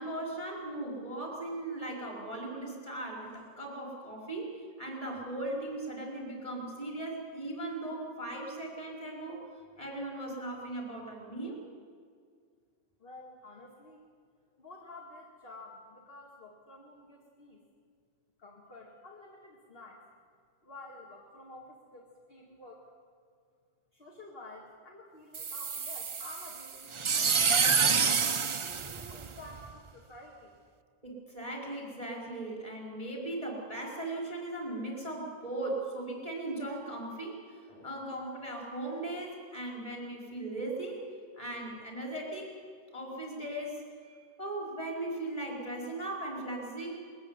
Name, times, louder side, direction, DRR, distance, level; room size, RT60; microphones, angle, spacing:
voice 1, 0.0-9.4 9.8-11.6 31.0-41.0 41.4-42.5 42.9-47.0, right 2 dB, 25° left, -1 dB, 4.9 m, -38 dB
voice 2, 13.0-14.1 14.6-17.6 18.4-20.0 20.6-22.9 23.9-27.5 28.6-30.6, left 2 dB, 45° left, -2 dB, 2.5 m, -50 dB
sound 1, 25.3-29.7, right 5 dB, 45° right, 0.4 m, -28 dB
21.5 x 13.5 x 9.8 m, 2.1 s
omnidirectional pair, 1.3 m